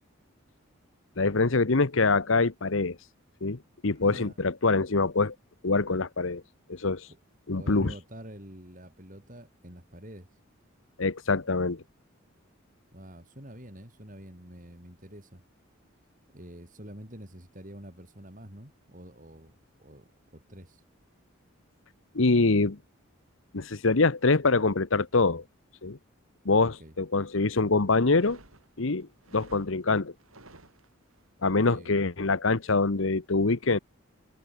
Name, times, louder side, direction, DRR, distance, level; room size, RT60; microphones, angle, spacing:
voice 1, 1.2-3.0 3.4-5.3 5.6-6.4 6.7-7.1 7.5-7.9 11.0-11.8 22.1-22.8 23.5-25.4 25.8-26.0 26.4-28.4 28.8-29.1 29.3-30.1 31.4-33.8, left 3 dB, 70° left, 1.1 m, -24 dB
voice 2, 4.0-4.4 7.1-7.2 7.6-10.3 12.9-15.4 16.3-19.5 19.8-20.8 26.6-26.9 31.5-31.9, equal, 40° right, 7.1 m, -47 dB
sound 1, 28.0-31.3, right 2 dB, 90° right, 6.7 m, -53 dB
head